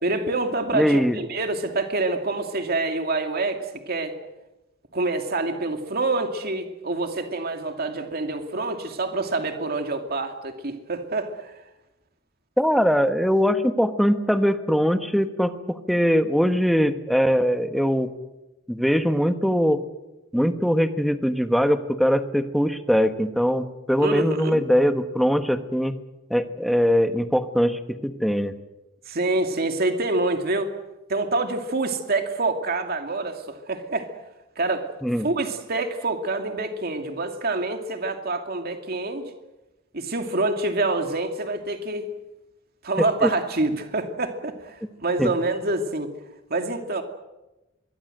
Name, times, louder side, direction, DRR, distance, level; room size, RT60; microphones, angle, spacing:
voice 1, 0.0-4.2 4.9-11.6 24.0-24.6 29.1-30.7 31.1-34.1 34.6-34.9 35.2-39.3 39.9-42.1 42.8-46.1 46.5-47.0, right 2 dB, 50° right, 5 dB, 2.5 m, -26 dB
voice 2, 0.7-1.2 12.6-18.1 18.7-19.8 20.3-25.9 26.3-28.5 35.0-35.3 43.2-43.3 45.2-45.3, equal, ahead, 8 dB, 1.2 m, -21 dB
25.5 x 22.5 x 7.9 m, 1.0 s
head